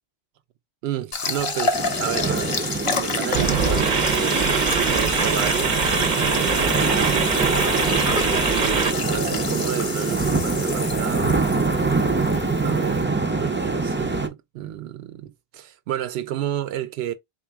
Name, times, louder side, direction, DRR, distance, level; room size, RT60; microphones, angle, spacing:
voice 1, 0.8-4.4 4.9-5.8 6.2-7.6 8.5-11.4 12.6-17.1, right 12 dB, 80° right, 0.8 m, -31 dB
sound 1, 1.1-13.0, left 4 dB, 40° left, 0.6 m, -30 dB
sound 2, 1.7-14.3, right 3 dB, 20° right, 0.4 m, -24 dB
sound 3, 3.3-8.9, right 6 dB, 50° right, 0.7 m, -23 dB
3.8 x 2.3 x 3.4 m
omnidirectional pair, 1.1 m